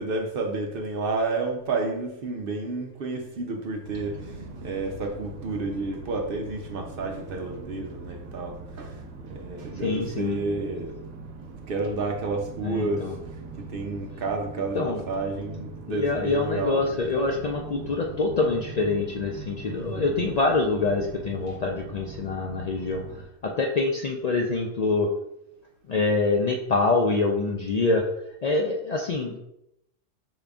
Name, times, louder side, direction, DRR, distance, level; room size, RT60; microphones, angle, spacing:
voice 1, 0.0-10.9 11.7-13.2 13.7-16.8 19.7-20.2, right 3 dB, 60° right, 2 dB, 0.7 m, -30 dB
sound 1, 3.8-23.3, right 3 dB, 85° right, 1.0 m, -41 dB
voice 2, 9.8-10.4 12.6-13.2 14.7-15.0 15.9-25.1 25.9-28.1 28.4-29.4, left 3 dB, 75° left, 0 dB, 0.3 m, -25 dB
5.4 x 2.4 x 3.4 m, 0.80 s
omnidirectional pair, 1.2 m